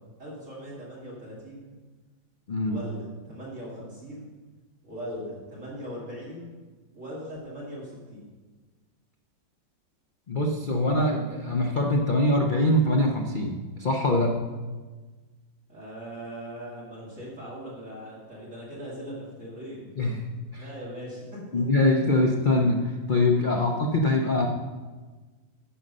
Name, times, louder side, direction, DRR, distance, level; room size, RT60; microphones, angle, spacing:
voice 1, 0.2-1.8 2.7-4.3 4.8-6.5 6.9-8.3 15.7-19.9 20.6-21.6 23.5-23.8, equal, 40° right, -6 dB, 2.5 m, -40 dB
voice 2, 2.5-2.8 10.3-14.4 20.0-20.6 21.5-24.5, left 1 dB, 90° left, 2 dB, 0.4 m, -23 dB
10.0 x 7.6 x 5.4 m, 1.3 s
omnidirectional pair, 2.0 m